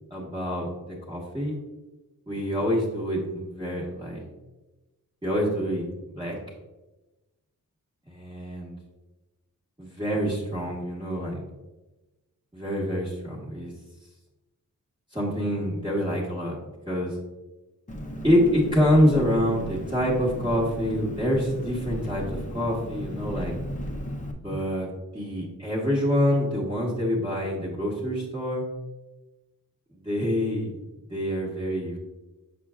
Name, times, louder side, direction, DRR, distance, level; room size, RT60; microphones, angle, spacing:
voice 1, 0.1-0.7 1.1-1.6 2.3-4.2 5.2-6.4 8.1-8.8 9.8-11.4 12.5-13.7 15.1-16.6 16.9-17.2 18.2-23.5 24.4-28.6 29.9-30.8 31.1-32.0, equal, 15° right, -6 dB, 1.1 m, -26 dB
Engine, 17.9-24.3, equal, 25° left, 0.7 m, -35 dB
6.5 x 6.0 x 2.4 m, 1.1 s
wide cardioid pair, 155°, 31 cm